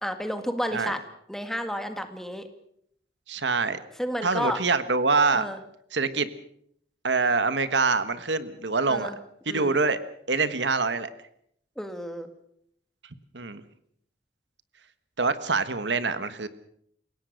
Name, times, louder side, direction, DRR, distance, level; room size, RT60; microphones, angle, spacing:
voice 1, 0.0-1.0 1.3-2.5 4.0-4.6 5.3-5.6 8.9-9.2 9.5-9.8 11.8-12.3, equal, ahead, 7 dB, 1.9 m, -31 dB
voice 2, 3.3-3.8 4.2-5.4 5.9-6.3 7.0-9.1 9.5-10.0 10.3-11.1 13.3-13.6 15.2-16.5, right 4 dB, 85° right, 12 dB, 1.5 m, -25 dB
29.0 x 17.5 x 6.5 m, 0.70 s
head